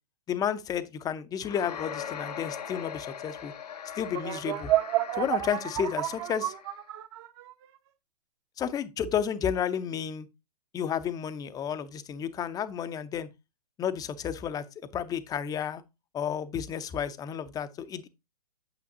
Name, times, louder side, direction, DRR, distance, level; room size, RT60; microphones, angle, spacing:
voice 1, 0.3-3.5 4.0-4.7 5.1-6.5 8.6-10.3 10.7-13.3 13.8-14.6 14.9-15.8 16.1-18.1, left 8 dB, 20° left, 0.7 m, -31 dB
sound 1, 1.4-6.8, left 8 dB, 80° left, 1.1 m, -40 dB
sound 2, 4.1-7.7, right 14 dB, 40° right, 1.2 m, -30 dB
8.7 x 7.7 x 2.8 m
hypercardioid pair, 120°, 20 cm